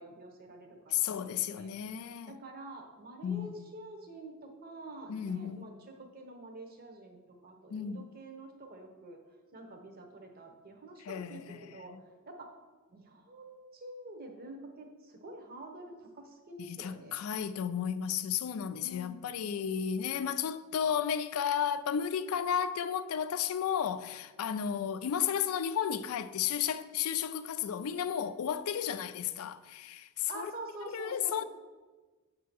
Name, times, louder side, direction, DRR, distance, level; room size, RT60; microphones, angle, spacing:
voice 1, 0.0-1.7 2.3-5.7 6.0-9.2 9.5-11.9 12.3-12.5 12.9-17.2 18.8-19.2 30.3-31.4, right 2 dB, 45° right, 0.8 m, -47 dB
voice 2, 0.9-2.4 3.2-3.5 5.1-5.6 7.7-8.1 11.0-12.0 16.6-30.5 30.8-31.4, left 8 dB, 75° left, 0.4 m, -33 dB
8.1 x 2.8 x 5.9 m
head